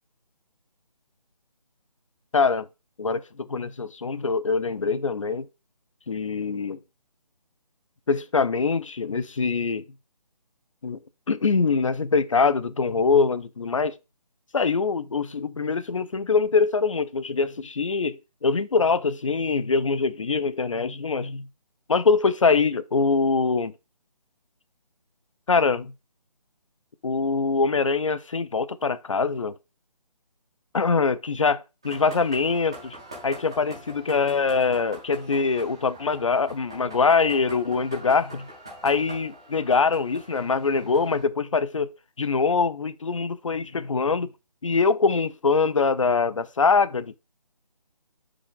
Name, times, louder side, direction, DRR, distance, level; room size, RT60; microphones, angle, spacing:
voice 1, 2.3-2.7 3.0-5.5 6.1-6.8 8.1-9.8 10.8-11.0 11.3-14.0 14.5-21.5 21.9-23.7 25.5-25.9 27.0-29.5 30.7-33.0 33.2-38.5 38.8-44.3 44.6-47.2, left 4 dB, 50° left, 0.5 m, -23 dB
sound 1, 31.8-41.2, right 1 dB, 10° right, 0.4 m, -44 dB
5.7 x 4.9 x 3.7 m
figure-of-eight pair, 150°, 21 cm